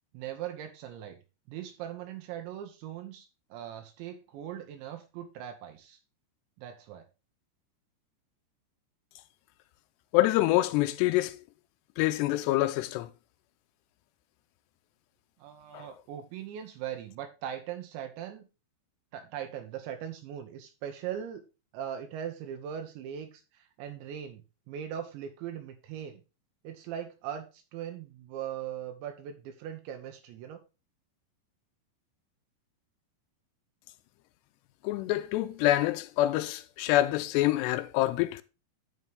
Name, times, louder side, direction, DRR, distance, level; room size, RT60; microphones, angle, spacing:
voice 1, 0.1-1.2 1.5-6.0 6.6-7.1 15.4-18.5 19.1-21.4 21.7-24.4 24.7-26.2 26.6-30.6, right 9 dB, 85° right, 3.2 m, -40 dB
voice 2, 10.1-11.4 12.0-13.1 15.7-15.9 34.8-38.4, left 16 dB, 80° left, 2.5 m, -26 dB
11.0 x 5.5 x 3.5 m
omnidirectional pair, 5.1 m